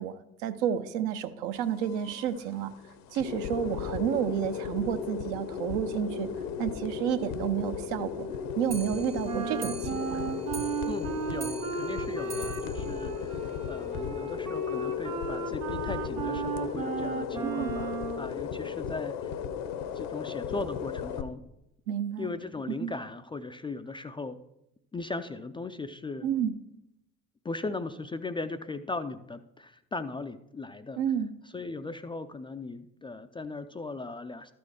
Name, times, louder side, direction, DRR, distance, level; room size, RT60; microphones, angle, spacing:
voice 1, 0.0-2.7 3.1-6.3 6.6-8.3 8.6-10.4 17.4-17.7 21.9-22.3 22.8-22.9 26.2-26.5 31.0-31.3, right 9 dB, 65° right, 9 dB, 0.8 m, -30 dB
sound 1, 1.5-21.2, left 7 dB, 65° left, 0.9 m, -36 dB
Clock, 8.6-14.1 14.5-14.6 14.8-14.9 15.2-15.3 15.6-15.7 16.4-16.5 17.2-17.3 18.0-18.1, right 6 dB, 40° right, 1.0 m, -45 dB
Wind instrument woodwind instrument, 9.2-18.3, right 5 dB, 85° right, 1.2 m, -35 dB
voice 2, 10.9-19.3 19.9-21.4 22.2-24.4 24.9-26.3 27.4-31.0 31.5-34.5, left 3 dB, 15° left, 9 dB, 0.4 m, -38 dB
13.0 x 4.4 x 4.8 m, 0.82 s
figure-of-eight pair, 55°, 41 cm